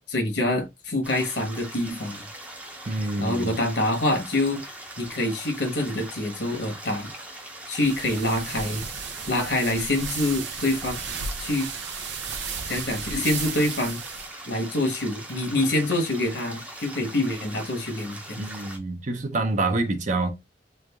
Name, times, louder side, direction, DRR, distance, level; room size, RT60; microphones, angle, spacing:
voice 1, 0.1-2.2 3.2-4.6 5.0-7.1 7.7-8.8 9.3-11.0 11.4-11.7 12.7-14.0 14.5-18.5, left 1 dB, 70° left, 1.1 m, -26 dB
sound 1, 1.0-18.8, right 1 dB, 10° right, 0.7 m, -41 dB
voice 2, 2.9-3.5 18.4-20.3, right 2 dB, 45° right, 0.6 m, -27 dB
sound 2, 7.8-14.3, right 6 dB, 85° right, 0.7 m, -34 dB
3.3 x 2.4 x 3.4 m
head